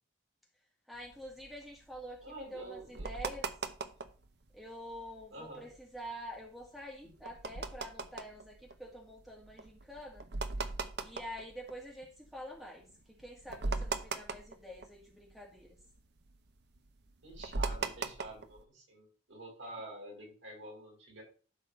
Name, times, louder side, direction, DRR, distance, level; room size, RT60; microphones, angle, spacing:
voice 1, 0.9-3.4 4.5-10.2 11.0-12.8 13.2-15.7, equal, ahead, -2 dB, 2.2 m, -47 dB
sound 1, 1.0-4.3 4.7-5.3 5.7-12.4 12.8-12.9 13.2-15.3 15.6-18.6, right 3 dB, 55° right, 0.8 m, -39 dB
voice 2, 2.2-3.1 5.3-5.7 17.2-21.2, right 1 dB, 75° right, -1 dB, 5.2 m, -48 dB
11.5 x 4.2 x 5.4 m, 0.38 s
head